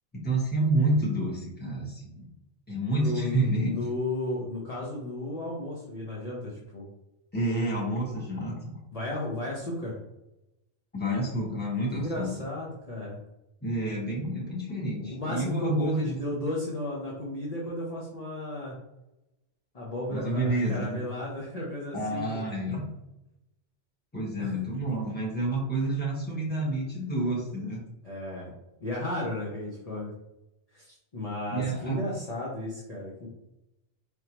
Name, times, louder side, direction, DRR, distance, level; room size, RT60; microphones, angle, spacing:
voice 1, 0.1-2.2 2.7-3.7 7.3-8.8 10.9-12.3 13.6-16.1 20.1-21.0 21.9-22.9 24.1-27.8 31.5-32.0, right 1 dB, 10° left, -5 dB, 1.3 m, -29 dB
voice 2, 2.9-6.9 8.9-10.0 11.9-13.2 15.0-18.7 19.7-22.5 24.4-24.5 28.0-28.5 28.8-30.1 30.7-33.3, left 1 dB, 35° left, -5 dB, 0.9 m, -34 dB
4.5 x 3.5 x 3.0 m, 0.91 s
omnidirectional pair, 1.2 m